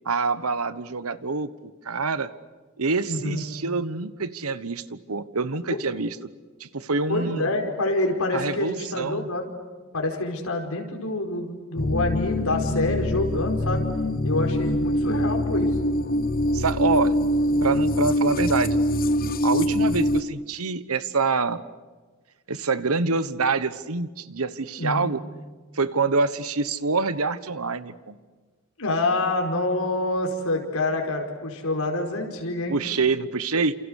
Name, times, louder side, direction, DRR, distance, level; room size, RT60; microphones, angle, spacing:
voice 1, 0.0-2.3 2.8-6.2 6.6-7.5 8.3-9.3 16.5-17.2 17.6-18.8 19.4-21.6 22.5-25.2 25.7-28.2 32.7-33.8, right 4 dB, 85° right, 14 dB, 1.2 m, -26 dB
voice 2, 3.1-3.4 5.7-5.8 7.1-9.5 9.9-13.8 14.2-15.7 24.8-25.1 28.8-32.7, left 2 dB, 75° left, 2 dB, 5.0 m, -27 dB
sound 1, 11.8-20.2, left 1 dB, 40° left, 0.8 m, -24 dB
29.5 x 28.0 x 6.5 m, 1.4 s
head